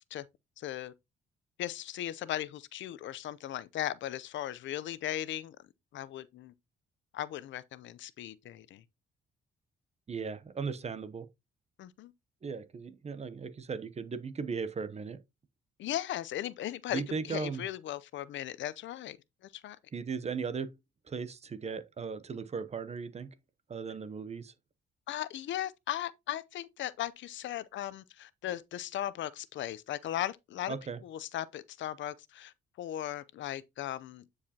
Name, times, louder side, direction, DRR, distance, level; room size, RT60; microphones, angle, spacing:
voice 1, 0.6-0.9 1.6-5.6 5.9-6.5 7.1-8.8 11.8-12.1 15.8-19.2 19.5-19.8 25.1-30.7 31.0-34.2, left 12 dB, 70° left, 0.6 m, -37 dB
voice 2, 10.1-11.3 12.4-15.2 16.9-17.7 19.9-20.8 21.1-23.3 23.7-24.5 30.7-31.0, right 5 dB, 35° right, 0.7 m, -37 dB
9.4 x 4.8 x 2.8 m
cardioid pair, 90°, 20 cm